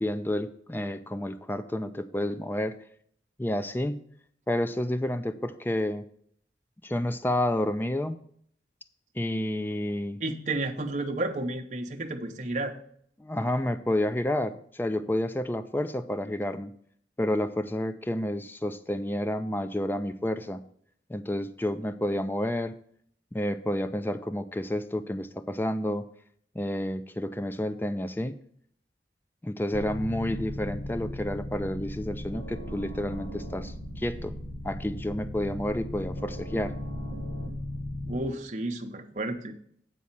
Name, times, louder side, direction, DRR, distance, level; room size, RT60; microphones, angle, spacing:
voice 1, 0.0-2.8 3.4-4.0 4.5-6.0 6.8-8.2 9.2-10.2 13.2-16.7 17.2-20.6 21.1-22.7 23.3-26.0 26.5-28.4 29.4-34.3 34.6-36.7, left 1 dB, 10° left, 10 dB, 0.4 m, -30 dB
voice 2, 10.2-12.8 38.0-39.6, right 2 dB, 40° right, 4 dB, 0.9 m, -32 dB
sound 1, 29.7-38.2, left 1 dB, 35° left, 1.2 m, -37 dB
8.4 x 4.3 x 7.2 m, 0.63 s
head